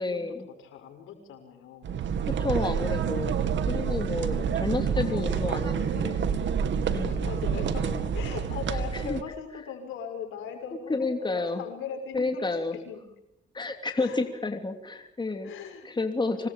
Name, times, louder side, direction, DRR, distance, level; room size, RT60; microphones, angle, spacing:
voice 1, 0.0-0.5 2.4-6.3 6.8-8.1 8.9-9.2 10.9-11.6 12.1-12.8 13.5-15.5 15.8-16.5, left 3 dB, 20° left, 5 dB, 3.1 m, -31 dB
voice 2, 0.6-2.0 4.4-4.7 5.0-6.7 7.0-13.0 13.9-14.2 15.4-15.9 16.4-16.5, left 7 dB, 90° left, 5 dB, 6.2 m, -40 dB
sound 1, 1.8-9.2, right 7 dB, 70° right, 2.3 m, -28 dB
26.5 x 20.0 x 8.8 m, 0.87 s
cardioid pair, 90°, 20 cm